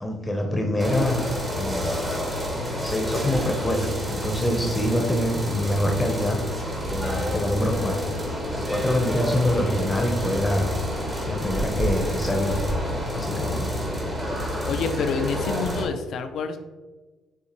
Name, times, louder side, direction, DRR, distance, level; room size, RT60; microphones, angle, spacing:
voice 1, 0.0-1.9 2.8-6.4 6.9-8.1 8.5-10.7 11.3-12.6 13.1-13.7, left 1 dB, 20° left, 2 dB, 0.8 m, -25 dB
sound 1, 0.8-15.9, equal, 25° right, 1.2 m, -28 dB
voice 2, 14.7-16.6, left 5 dB, 65° left, 8 dB, 0.4 m, -28 dB
6.6 x 2.5 x 3.0 m, 1.3 s
hypercardioid pair, 55°, 0 cm